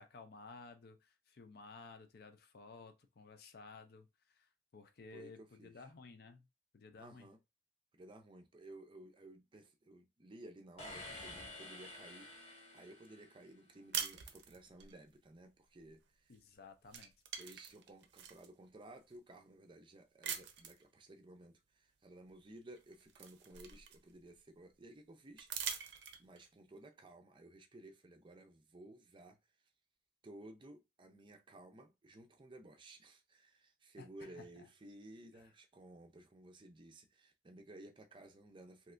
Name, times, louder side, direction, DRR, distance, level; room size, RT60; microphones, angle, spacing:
voice 1, 0.0-6.5 6.7-7.3 16.3-17.1 34.0-34.5 35.4-35.5, left 4 dB, 60° left, 0.5 m, -55 dB
voice 2, 5.1-5.9 7.0-7.4 7.9-16.3 17.4-29.4 30.2-38.9, right 1 dB, 30° right, 0.5 m, -56 dB
sound 1, 10.8-13.6, left 2 dB, 35° left, 0.8 m, -50 dB
sound 2, 13.9-14.9 16.3-16.5 16.8-18.5 19.1-19.2 20.2-20.8 22.3-22.4 22.8-24.3 25.4-26.5, right 8 dB, 75° right, 0.6 m, -43 dB
3.2 x 2.8 x 2.5 m
head